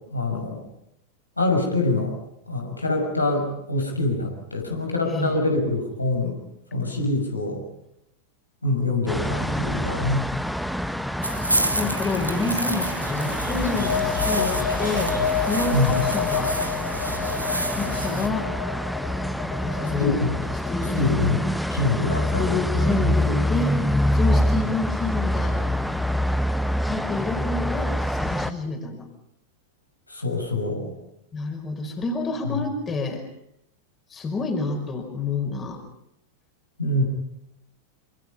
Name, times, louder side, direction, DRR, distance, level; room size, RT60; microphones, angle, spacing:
voice 1, 0.1-0.6 1.4-2.1 2.5-6.3 6.7-7.6 8.6-10.2 15.7-15.9 20.0-20.3 21.0-21.4 21.7-23.2 30.1-30.9 36.8-37.0, left 2 dB, 85° left, 1 dB, 6.7 m, -25 dB
sound 1, 9.1-28.5, left 1 dB, ahead, 1.0 m, -26 dB
sound 2, 11.2-18.3, right 1 dB, 85° right, 2.0 m, -30 dB
voice 2, 11.7-16.6 17.8-18.5 19.4-20.2 20.5-21.2 22.4-23.8 24.1-25.6 26.8-29.1 31.3-33.2 34.1-35.8, left 4 dB, 20° left, 4 dB, 5.0 m, -28 dB
sound 3, 13.4-21.0, left 7 dB, 45° left, 2.1 m, -30 dB
27.5 x 26.0 x 5.6 m, 0.79 s
figure-of-eight pair, 90°, 0 cm